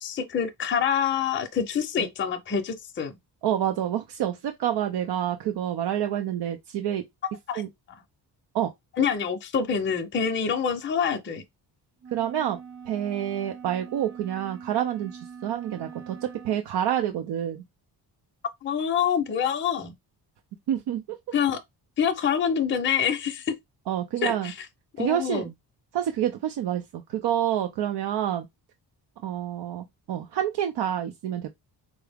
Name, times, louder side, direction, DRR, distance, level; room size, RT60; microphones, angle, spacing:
voice 1, 0.0-3.2 7.5-7.6 9.0-11.4 18.6-19.9 21.3-21.6 22.0-23.6 24.2-24.5 25.0-25.5, left 7 dB, 30° left, 0.5 m, -26 dB
voice 2, 3.4-7.1 7.5-7.7 8.5-8.7 12.1-12.6 12.9-17.6 20.7-21.2 23.9-24.5 25.0-25.5 25.9-28.5 29.2-31.6, right 10 dB, 80° right, 0.6 m, -28 dB
sound 1, 12.0-16.6, right 6 dB, 45° right, 0.7 m, -43 dB
4.6 x 2.1 x 3.4 m
wide cardioid pair, 170°, 41 cm